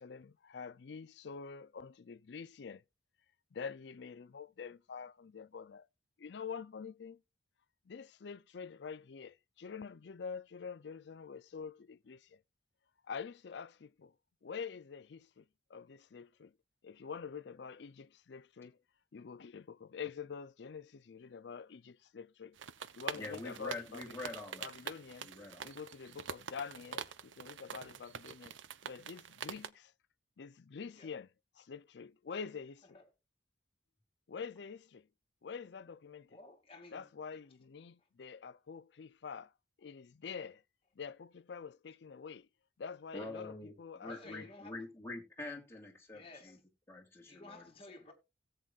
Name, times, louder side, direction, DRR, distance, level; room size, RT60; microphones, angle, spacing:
voice 1, 0.0-2.8 3.5-5.9 6.2-7.2 7.9-12.4 13.1-14.1 14.4-16.6 16.8-18.8 19.1-22.6 22.9-24.3 24.6-25.3 25.6-28.5 28.8-29.9 30.4-31.3 31.6-33.0 34.3-35.1 35.4-36.4 36.9-39.5 39.8-40.6 41.0-42.5 42.8-44.5, left 6 dB, 60° left, 0.4 m, -46 dB
sound 1, 22.6-29.7, right 7 dB, 80° right, 0.6 m, -46 dB
voice 2, 23.2-25.7 43.1-46.6 46.9-47.7, left 2 dB, 15° left, 2.8 m, -46 dB
voice 3, 36.3-37.1 37.3-37.4 43.3-43.5 44.0-44.8 46.1-46.6 47.3-48.1, left 2 dB, 30° left, 2.3 m, -54 dB
17.5 x 8.0 x 2.4 m
head